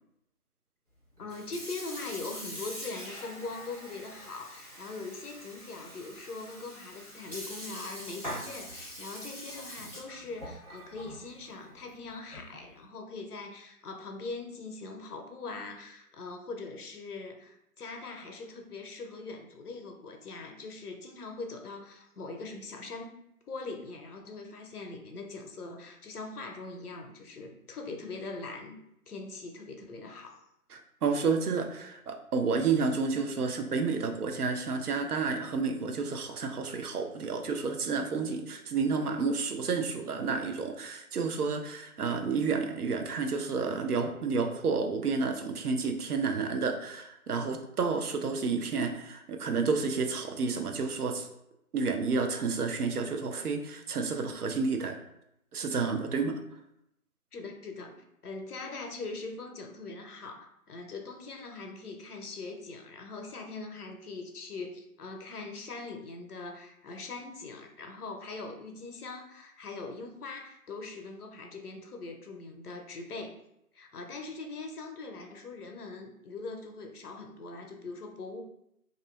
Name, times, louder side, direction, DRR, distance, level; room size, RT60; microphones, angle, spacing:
voice 1, 1.2-23.2 23.5-28.8 29.1-30.4 57.3-73.4 73.7-78.4, left 3 dB, 80° left, 4 dB, 0.6 m, -42 dB
Sink (filling or washing) / Fill (with liquid), 1.2-12.7, equal, 25° right, 0.9 m, -44 dB
voice 2, 30.7-51.3 51.7-55.0 55.5-56.4, right 4 dB, 80° right, 5 dB, 0.5 m, -30 dB
2.6 x 2.4 x 2.2 m, 0.80 s
figure-of-eight pair, 160°, 45 cm